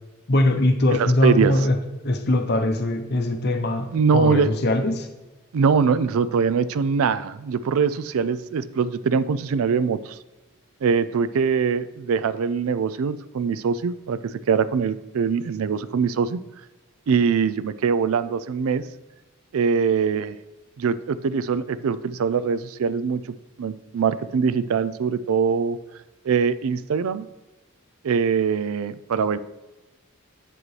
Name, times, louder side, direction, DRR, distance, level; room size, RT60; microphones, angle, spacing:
voice 1, 0.3-1.8 2.0-5.1, left 1 dB, 45° left, 6 dB, 0.8 m, -21 dB
voice 2, 1.0-1.5 3.9-4.5 5.5-10.2 10.8-16.4 17.1-18.9 19.5-20.4 20.8-25.8 26.3-27.3 28.0-29.4, right 6 dB, 70° right, 15 dB, 0.4 m, -23 dB
7.7 x 7.4 x 3.2 m, 1.1 s
head